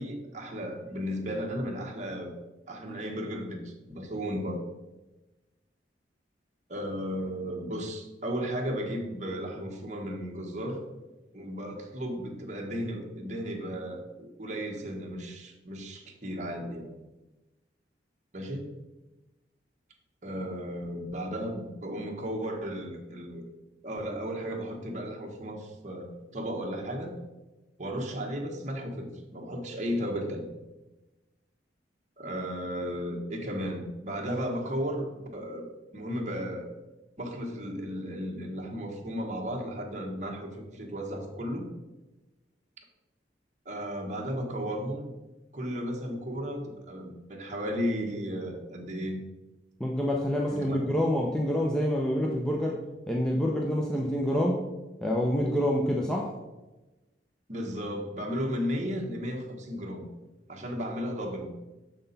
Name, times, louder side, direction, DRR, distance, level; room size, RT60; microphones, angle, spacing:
voice 1, 0.0-2.3 2.7-4.7 6.7-10.8 11.3-16.9 18.3-18.7 20.2-23.5 23.8-27.2 27.8-30.5 32.2-35.7 35.9-36.7 37.2-41.7 43.6-45.1 45.5-49.2 50.5-50.8 53.9-54.0 57.5-60.0 60.5-61.5, equal, 40° right, 0 dB, 1.3 m, -34 dB
voice 2, 49.8-52.8 53.1-54.6 55.0-56.3, equal, 5° left, -1 dB, 0.6 m, -27 dB
6.8 x 5.9 x 4.0 m, 1.1 s
head